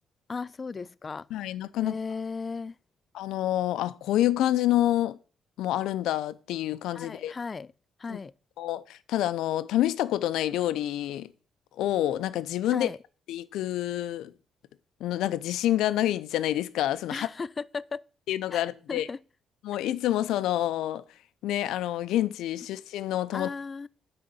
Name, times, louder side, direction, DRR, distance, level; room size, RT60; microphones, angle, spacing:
voice 1, 0.3-1.5 1.7-2.8 6.9-7.7 8.0-8.3 12.7-13.0 17.1-18.0 18.5-18.6 18.9-19.2 23.3-23.9, left 4 dB, 35° left, 0.3 m, -36 dB
voice 2, 1.3-1.9 3.1-5.2 5.6-7.3 8.1-8.2 8.6-11.3 11.8-12.9 13.3-14.3 15.0-17.3 18.3-19.1 19.6-21.0 21.4-23.5, left 13 dB, 85° left, 0.5 m, -27 dB
9.7 x 3.8 x 6.9 m
cardioid pair, 90°, 0 cm